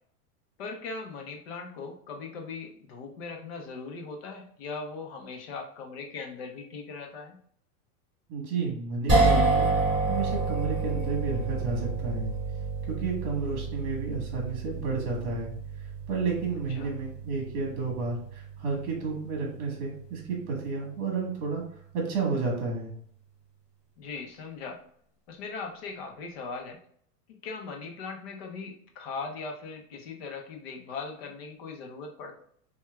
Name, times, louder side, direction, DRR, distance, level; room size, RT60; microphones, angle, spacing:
voice 1, 0.6-7.4 16.8-16.9 24.0-24.8 25.3-26.8 27.4-32.4, left 4 dB, 40° left, 2 dB, 0.7 m, -39 dB
voice 2, 8.3-9.7 10.1-12.3 12.9-15.5 16.1-21.6 21.9-22.9, right 4 dB, 45° right, -1 dB, 1.5 m, -31 dB
sound 1, 9.1-21.4, right 3 dB, ahead, 0.4 m, -30 dB
5.8 x 2.3 x 2.3 m, 0.63 s
supercardioid pair, 180°, 47 cm